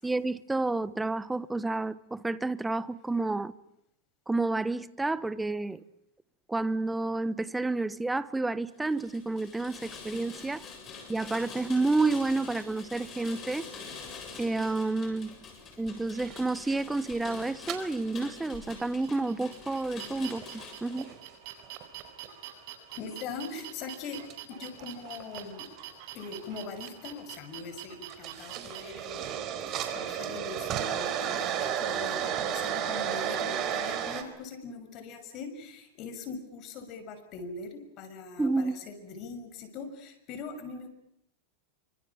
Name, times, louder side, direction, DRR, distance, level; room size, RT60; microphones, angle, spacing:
voice 1, 0.0-3.5 4.3-5.8 6.5-10.7 11.1-13.7 14.4-15.4 15.8-21.1 38.4-38.8, right 3 dB, 10° right, 1.1 m, -30 dB
Rain, 8.7-21.1, left 5 dB, 30° left, 7.5 m, -45 dB
sound 1, 16.2-17.0 17.7-17.8 19.0-19.2 19.8-19.9 20.4-21.2 21.6-22.3 23.6-23.7 24.3-24.4 24.7-25.8 26.9-27.2 27.7-27.8 28.1-34.2, right 9 dB, 40° right, 4.2 m, -33 dB
sound 2, 18.8-28.8, right 12 dB, 55° right, 7.9 m, -45 dB
voice 2, 22.9-24.2 24.5-25.7 26.1-40.9, left 4 dB, 45° left, 6.5 m, -42 dB
28.5 x 25.5 x 7.3 m
supercardioid pair, 125°, 0 cm